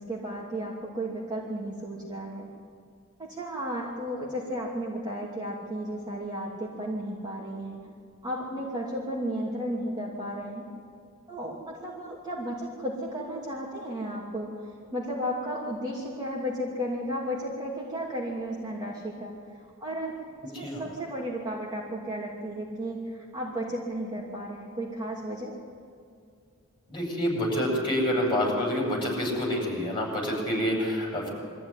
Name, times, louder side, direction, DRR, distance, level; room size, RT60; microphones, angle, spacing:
voice 1, 0.0-2.5 3.2-7.8 8.2-10.7 11.3-14.5 14.9-19.3 19.8-20.1 20.4-25.5, equal, 20° right, -5 dB, 2.7 m, -34 dB
voice 2, 26.9-31.3, equal, 20° left, -3 dB, 7.6 m, -27 dB
23.5 x 14.5 x 9.8 m, 2.3 s
head